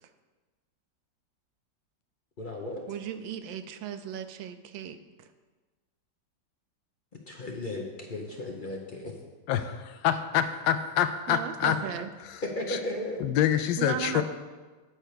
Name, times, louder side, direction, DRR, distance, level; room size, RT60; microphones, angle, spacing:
voice 1, 2.4-2.8 7.3-9.1 12.4-13.2, left 1 dB, 45° left, 0 dB, 0.6 m, -35 dB
voice 2, 2.9-5.3 11.3-12.1 13.8-14.2, right 9 dB, 85° right, 10 dB, 1.4 m, -36 dB
voice 3, 9.5-11.8 12.2-12.4 12.7-12.8 13.2-14.2, left 10 dB, 80° left, 9 dB, 1.3 m, -26 dB
9.6 x 4.5 x 6.6 m, 1.3 s
omnidirectional pair, 2.0 m